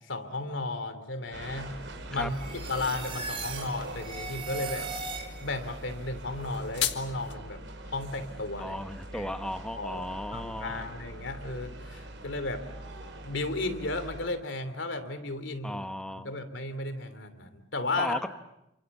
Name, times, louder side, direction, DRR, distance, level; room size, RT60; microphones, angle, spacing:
voice 1, 0.1-1.7 2.1-4.9 5.4-8.8 9.1-9.3 9.7-10.1 10.3-12.6 13.2-15.8 16.2-18.2, left 2 dB, 90° left, 10 dB, 3.0 m, -34 dB
sound 1, 1.3-14.3, right 1 dB, 75° right, 4.8 m, -43 dB
sound 2, 2.3-5.7, right 4 dB, 30° right, 4.0 m, -39 dB
sound 3, 6.3-7.3, left 11 dB, 70° left, 1.6 m, -33 dB
voice 2, 8.6-10.9 15.6-16.3 18.0-18.3, equal, 5° left, 8 dB, 1.1 m, -35 dB
29.5 x 26.0 x 7.3 m, 0.86 s
head